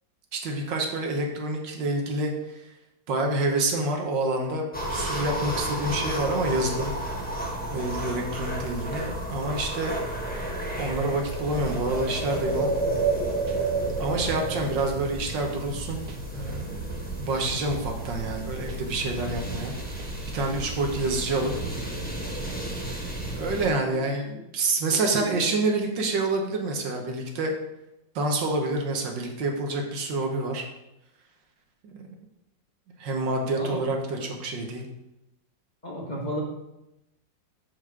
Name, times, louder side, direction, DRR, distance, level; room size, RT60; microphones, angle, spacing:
voice 1, 0.3-2.3 3.1-6.9 7.7-10.0 10.8-12.7 14.0-16.0 16.3-16.9 17.2-19.7 20.3-21.5 23.3-27.5 28.1-30.6 31.8-32.1 33.0-34.9, right 2 dB, 75° right, 2 dB, 1.8 m, -27 dB
sound 1, 4.7-23.7, right 2 dB, 5° left, 0.8 m, -31 dB
sound 2, 11.7-22.0, right 5 dB, 60° right, 1.4 m, -45 dB
voice 2, 24.9-25.5 33.6-33.8 34.2-34.3 35.8-36.4, equal, 25° left, -4 dB, 1.4 m, -34 dB
7.1 x 4.9 x 5.9 m, 0.91 s
omnidirectional pair, 2.0 m